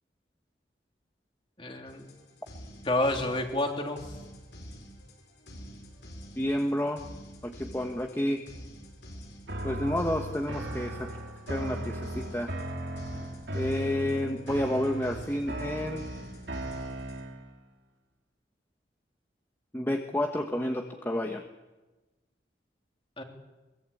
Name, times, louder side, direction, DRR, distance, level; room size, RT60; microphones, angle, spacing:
voice 1, 1.6-2.1 2.8-4.0 23.2-23.3, left 1 dB, 30° left, 3 dB, 3.2 m, -29 dB
sound 1, 1.9-17.2, equal, 75° left, 5.8 m, -47 dB
voice 2, 6.4-7.0 7.4-8.4 9.6-11.1 11.5-12.6 13.5-16.0 19.7-21.4, left 1 dB, 15° left, 3 dB, 1.3 m, -30 dB
sound 2, 9.5-17.5, right 1 dB, 75° right, 3.0 m, -37 dB
23.0 x 22.0 x 8.5 m, 1.1 s
head